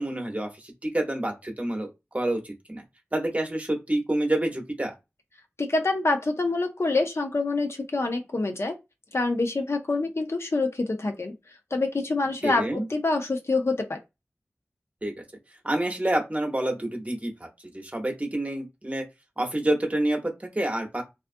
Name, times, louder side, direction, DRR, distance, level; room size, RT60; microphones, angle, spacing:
voice 1, 0.0-1.9 2.1-2.8 3.1-4.9 12.4-12.9 15.0-15.1 15.6-17.5 17.7-19.0 19.4-21.0, right 1 dB, 30° right, 0.8 m, -28 dB
voice 2, 5.6-8.8 9.1-11.3 11.7-14.0, left 3 dB, 60° left, 0.5 m, -26 dB
2.4 x 2.3 x 2.5 m
wide cardioid pair, 55°, 5 cm